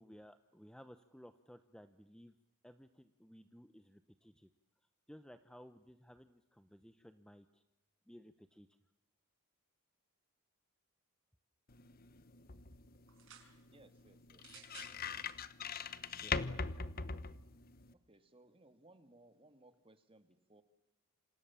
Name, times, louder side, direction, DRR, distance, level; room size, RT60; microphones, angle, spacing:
voice 1, 0.0-2.3 2.6-4.5 5.1-7.6 8.1-8.7 16.2-16.6, equal, 5° left, 10 dB, 0.8 m, -58 dB
sound 1, 11.7-17.9, left 5 dB, 40° left, 1.0 m, -42 dB
sound 2, 13.1-13.5 14.4-15.0 15.9-16.0, right 9 dB, 60° right, 5.5 m, -56 dB
voice 2, 13.7-14.9 17.9-20.6, right 2 dB, 25° right, 9 dB, 2.0 m, -64 dB
28.0 x 27.0 x 7.1 m, 1.0 s
head